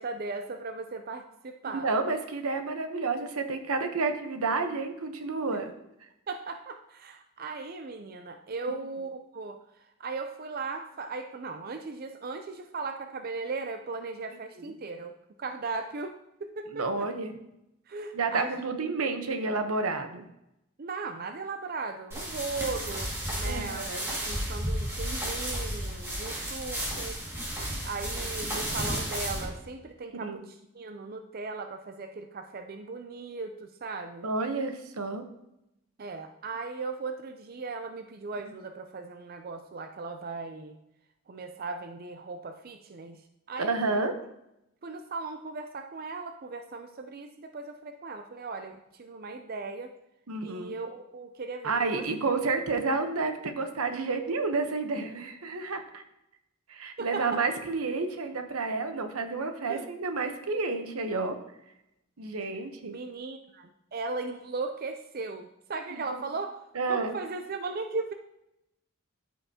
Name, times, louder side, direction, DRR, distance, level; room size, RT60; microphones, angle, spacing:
voice 1, 0.0-1.9 6.3-15.1 15.4-16.1 16.4-17.1 17.9-18.5 20.8-23.1 23.4-23.9 24.2-27.2 27.8-34.3 36.0-40.8 41.3-43.2 43.5-44.0 44.8-49.9 50.4-52.4 57.0-57.4 59.7-59.9 62.9-68.1, right 3 dB, 45° right, 6 dB, 0.5 m, -37 dB
voice 2, 1.8-5.7 14.6-14.7 16.7-17.3 18.1-20.3 23.5-24.2 30.2-30.5 34.2-35.2 43.6-44.1 50.3-50.7 51.6-56.0 56.7-61.4 62.2-62.9 65.9-66.2 66.7-67.1, right 3 dB, 90° right, 7 dB, 1.0 m, -30 dB
sound 1, 22.1-29.4, equal, 10° right, 2.0 m, -33 dB
13.0 x 5.6 x 2.8 m, 0.84 s
head